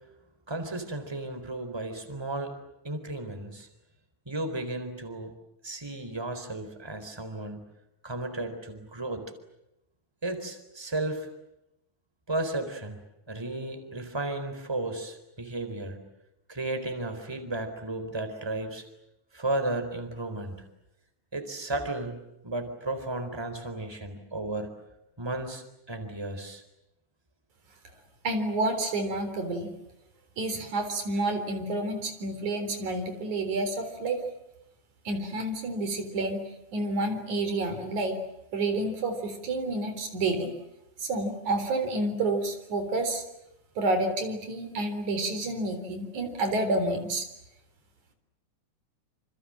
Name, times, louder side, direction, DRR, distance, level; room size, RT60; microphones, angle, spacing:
voice 1, 0.5-2.5 2.8-3.7 4.3-5.3 5.6-7.7 8.0-9.3 10.2-11.3 12.3-13.0 13.3-16.0 16.5-18.8 19.3-20.6 21.3-24.7 25.2-26.6, right 2 dB, 10° right, 7 dB, 4.0 m, -34 dB
voice 2, 28.2-29.7 30.4-34.2 35.1-36.4 36.7-38.2 38.5-40.5 41.0-43.2 43.8-47.3, right 2 dB, 80° right, 7 dB, 5.2 m, -29 dB
28.0 x 27.5 x 7.7 m, 0.88 s
omnidirectional pair, 3.3 m